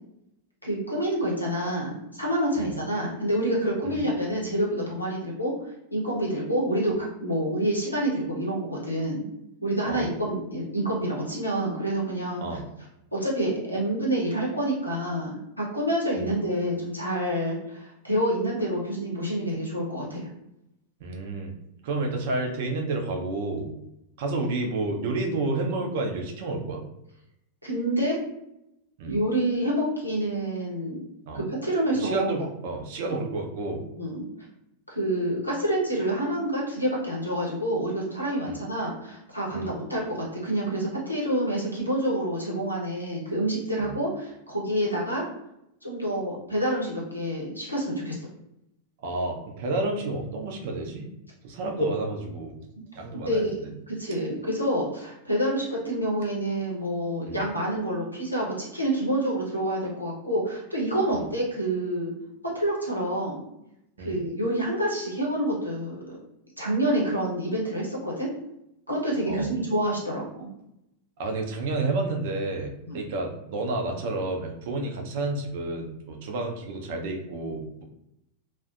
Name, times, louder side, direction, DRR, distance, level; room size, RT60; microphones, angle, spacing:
voice 1, 0.6-9.2 9.6-12.4 13.1-20.3 27.6-28.2 29.0-31.0 31.3-32.3 33.1-33.2 34.0-34.2 34.9-45.2 45.8-48.2 53.1-53.6 53.9-62.1 62.5-63.4 64.0-66.0 66.6-68.3 68.9-70.5 72.9-73.0, right 1 dB, 90° left, -4 dB, 0.7 m, -27 dB
voice 2, 21.0-21.5 21.8-23.7 24.2-26.8 29.0-29.1 31.3-31.4 31.9-33.8 38.4-38.6 39.5-39.7 43.8-43.9 49.0-51.1 51.4-52.5 53.0-53.7 57.3-57.4 61.1-61.2 64.0-64.2 69.3-69.5 71.2-77.8, right 2 dB, 50° right, 2 dB, 0.5 m, -30 dB
2.4 x 2.1 x 2.4 m, 0.83 s
figure-of-eight pair, 90°, 0 cm